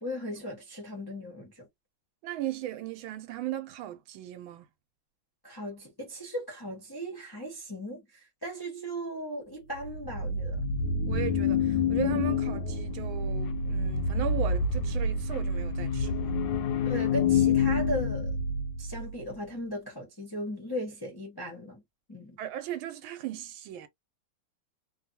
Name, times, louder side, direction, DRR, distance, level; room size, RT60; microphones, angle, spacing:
voice 1, 0.0-1.7 5.4-10.7 16.8-18.4 18.8-21.8 22.1-22.4, equal, 35° left, 0.3 m, -37 dB
voice 2, 2.2-4.7 11.1-16.4 22.4-23.9, right 12 dB, 75° right, 1.4 m, -37 dB
sound 1, 9.8-19.1, left 4 dB, 75° left, 1.1 m, -28 dB
3.3 x 2.2 x 2.7 m
omnidirectional pair, 2.3 m